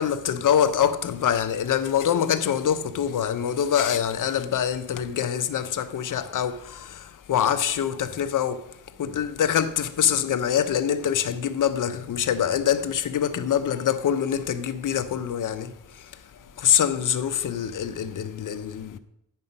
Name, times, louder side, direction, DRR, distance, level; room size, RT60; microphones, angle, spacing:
voice 1, 0.0-16.2 16.6-19.0, left 9 dB, 75° left, 0.7 m, -25 dB
9.6 x 5.5 x 5.4 m
wide cardioid pair, 100°, 32 cm